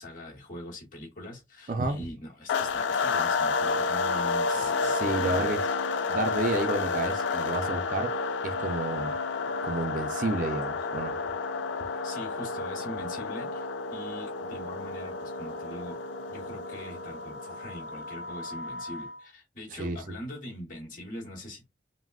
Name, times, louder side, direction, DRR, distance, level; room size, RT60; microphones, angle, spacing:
voice 1, 0.0-5.7 12.0-16.0 16.3-21.7, left 1 dB, 45° left, 1.1 m, -42 dB
voice 2, 1.7-2.0 4.5-5.6 6.1-8.1 8.4-9.1 9.6-11.2 19.7-20.2, right 2 dB, 45° right, 0.4 m, -31 dB
sound 1, 2.5-19.2, left 4 dB, 80° left, 0.3 m, -31 dB
3.5 x 2.0 x 2.3 m
head